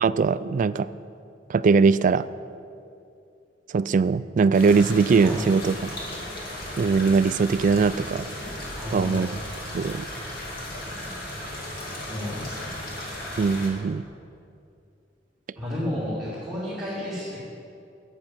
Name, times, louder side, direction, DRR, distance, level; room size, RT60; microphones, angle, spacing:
voice 1, 0.0-0.9 1.5-2.3 3.7-5.7 6.8-8.3 8.9-9.3 9.7-10.1 13.4-14.0, right 5 dB, 45° right, 15 dB, 0.3 m, -21 dB
sound 1, 4.5-13.7, left 1 dB, 55° left, 2.5 m, -36 dB
voice 2, 5.2-5.5 8.8-9.2 12.1-12.8 15.5-17.4, left 1 dB, ahead, -11 dB, 2.7 m, -32 dB
9.6 x 9.0 x 7.4 m, 2.5 s
head